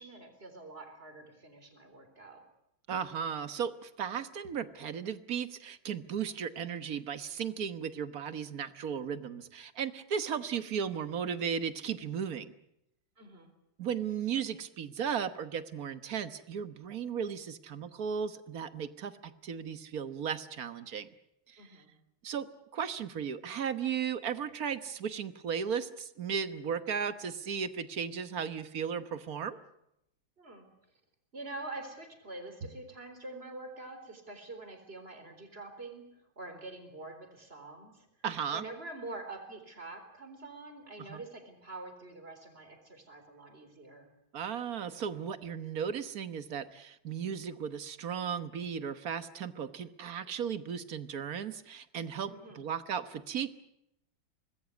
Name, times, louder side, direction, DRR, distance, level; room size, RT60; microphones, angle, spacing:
voice 1, 0.0-2.4 13.2-13.5 21.6-21.9 30.4-30.7 31.3-38.1 38.5-44.1 52.3-52.6, right 2 dB, 30° right, 6 dB, 4.2 m, -46 dB
voice 2, 2.9-12.5 13.8-21.1 21.5-21.7 22.2-22.5 22.7-29.6 38.2-38.6 41.1-41.2 44.3-53.5, right 7 dB, 50° right, 12 dB, 1.5 m, -35 dB
25.0 x 20.0 x 8.4 m, 0.82 s
omnidirectional pair, 2.1 m